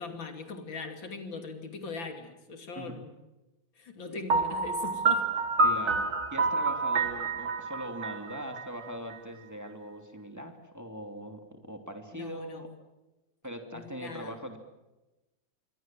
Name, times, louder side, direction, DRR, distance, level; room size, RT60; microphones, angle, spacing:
voice 1, 0.0-3.1 3.8-5.3 12.1-12.6 13.7-14.3, left 4 dB, 80° left, 6 dB, 3.5 m, -40 dB
Piano, 4.3-9.1, right 3 dB, 55° right, 2.1 m, -28 dB
voice 2, 5.6-12.7 13.4-14.6, equal, 10° right, 4 dB, 2.8 m, -41 dB
27.0 x 24.0 x 7.7 m, 1.0 s
omnidirectional pair, 2.1 m